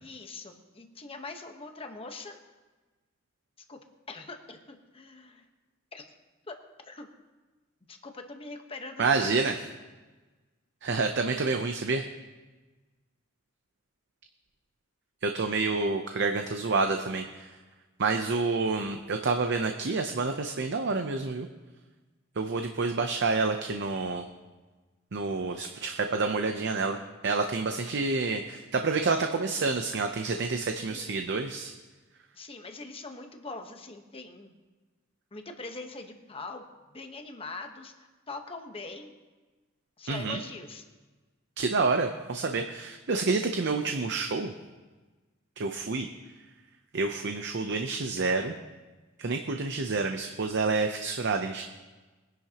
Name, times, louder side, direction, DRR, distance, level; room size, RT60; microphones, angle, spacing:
voice 1, 0.0-2.4 3.7-3.8 4.1-5.4 5.9-6.1 6.5-6.6 6.8-7.1 7.9-9.5 30.9-31.2 32.3-34.5 35.3-36.6 36.9-39.1 40.0-40.8, left 3 dB, 25° left, 5 dB, 1.1 m, -42 dB
voice 2, 9.0-9.6 10.8-12.1 15.2-17.5 18.0-21.5 22.4-24.3 25.1-27.0 27.2-31.7 40.1-40.4 41.6-44.5 45.6-46.1 46.9-48.5 49.2-51.6, right 3 dB, 55° right, 6 dB, 0.7 m, -28 dB
22.0 x 10.5 x 2.9 m, 1.3 s
head